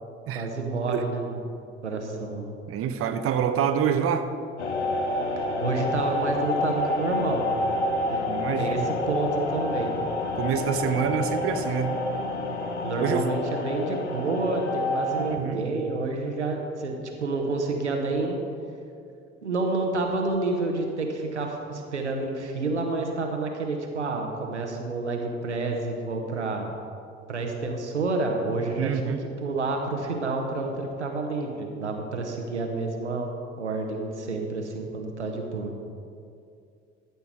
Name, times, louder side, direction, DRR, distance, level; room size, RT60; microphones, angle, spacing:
voice 1, 0.3-1.4 1.8-2.5 5.4-7.4 8.1-8.3 8.6-9.9 10.6-10.8 12.5-18.4 19.4-26.7 27.3-29.1 29.4-33.3 33.6-35.7, right 3 dB, 90° right, 2 dB, 1.0 m, -29 dB
voice 2, 2.7-4.3 8.3-8.9 10.4-12.0 13.0-13.3 15.3-15.6 28.8-29.2, right 8 dB, 40° right, 8 dB, 0.9 m, -26 dB
sound 1, 4.6-15.4, left 2 dB, 85° left, 0.9 m, -28 dB
13.5 x 6.8 x 4.6 m, 2.4 s
figure-of-eight pair, 60°, 34 cm